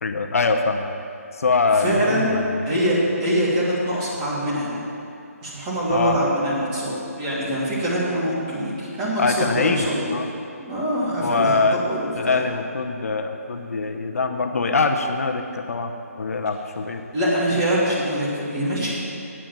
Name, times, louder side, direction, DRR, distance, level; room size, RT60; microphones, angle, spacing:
voice 1, 0.0-0.9 1.4-2.6 5.9-6.2 9.2-10.3 11.2-11.8 12.2-17.0, left 4 dB, 65° left, 5 dB, 0.8 m, -23 dB
voice 2, 1.8-2.4 2.6-4.8 5.4-10.1 10.6-12.4 17.1-18.9, equal, 20° right, -7 dB, 2.9 m, -24 dB
8.7 x 8.7 x 7.5 m, 2.7 s
figure-of-eight pair, 155°, 8 cm